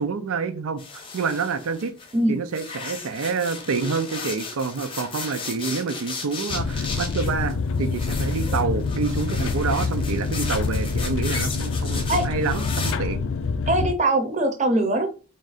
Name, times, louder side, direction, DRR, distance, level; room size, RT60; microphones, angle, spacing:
voice 1, 0.0-1.9 2.3-13.2, right 5 dB, 90° right, 0.5 m, -28 dB
sound 1, 0.8-2.2 2.5-12.9, left 4 dB, 25° left, 0.7 m, -35 dB
sound 2, 6.5-13.9, left 4 dB, 65° left, 0.4 m, -26 dB
voice 2, 13.7-15.1, right 1 dB, 35° right, 0.7 m, -21 dB
3.6 x 2.5 x 4.0 m
head